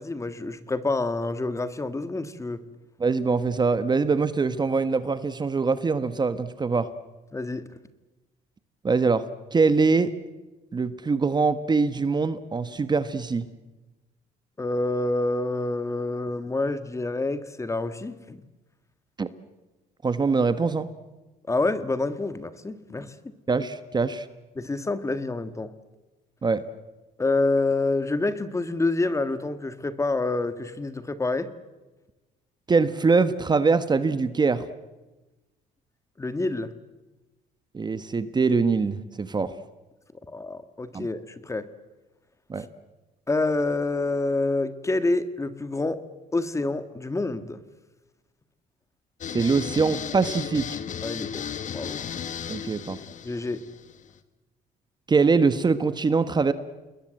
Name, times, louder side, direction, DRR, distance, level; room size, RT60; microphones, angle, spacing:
voice 1, 0.0-2.6 7.3-7.6 14.6-18.4 21.5-23.1 24.5-25.7 27.2-31.5 36.2-36.7 40.3-41.7 43.3-46.0 46.3-47.6 51.0-51.4 51.7-52.0 53.2-53.6, left 2 dB, 15° left, 11 dB, 1.6 m, -27 dB
voice 2, 3.0-6.9 8.8-9.2 9.5-10.1 10.7-13.5 19.2-19.3 20.0-20.9 23.5-24.3 26.4-26.6 32.7-34.7 37.7-39.5 40.9-41.1 42.5-42.7 49.3-50.8 52.5-53.0 55.1-56.5, right 4 dB, 25° right, 12 dB, 1.2 m, -23 dB
sound 1, 49.2-54.2, left 8 dB, 45° left, 1.7 m, -35 dB
29.0 x 21.0 x 7.7 m, 1.1 s
cardioid pair, 110°, 17 cm